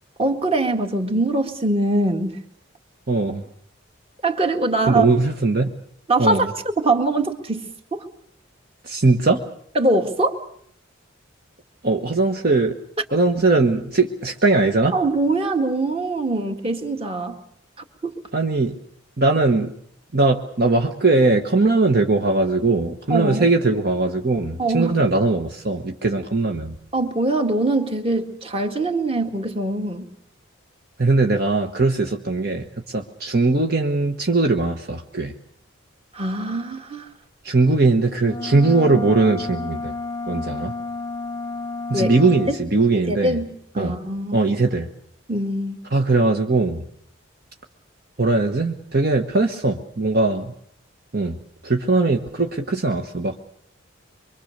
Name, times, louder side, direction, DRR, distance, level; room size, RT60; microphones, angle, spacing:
voice 1, 0.2-2.3 4.2-5.1 6.1-6.5 6.8-8.1 9.8-10.4 14.9-17.4 18.0-18.2 23.1-23.5 24.6-25.0 26.9-30.1 36.1-37.1 41.9-42.2 42.5-42.6 43.0-43.5 43.7-44.4 45.3-45.8, right 2 dB, 30° right, 5 dB, 1.9 m, -22 dB
voice 2, 3.1-3.5 4.8-5.7 6.2-6.5 8.8-9.4 11.8-12.8 13.1-15.0 18.3-18.7 19.2-19.7 20.1-26.8 31.0-35.3 37.4-39.9 40.3-40.7 41.9-43.4 43.8-43.9 44.3-44.9 45.9-46.8 48.2-50.5 51.1-51.4 51.6-53.4, right 3 dB, 50° right, 4 dB, 1.2 m, -20 dB
sound 1, 38.2-42.6, left 3 dB, 10° left, 1.0 m, -31 dB
24.5 x 24.0 x 6.6 m, 0.66 s
head